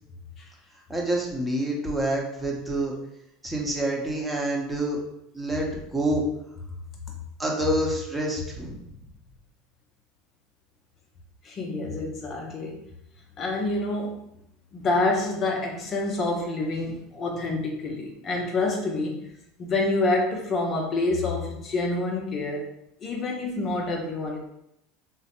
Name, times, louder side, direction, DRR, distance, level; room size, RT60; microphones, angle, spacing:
voice 1, 0.9-2.9 3.4-5.0 5.3-6.2 7.4-8.8, right 1 dB, 10° right, -2 dB, 0.8 m, -27 dB
voice 2, 11.4-12.8 13.4-14.2 14.7-19.2 19.6-22.6 23.0-24.4, left 2 dB, 40° left, 0 dB, 0.5 m, -27 dB
3.0 x 2.0 x 2.9 m, 0.78 s
hypercardioid pair, 90°, 0 cm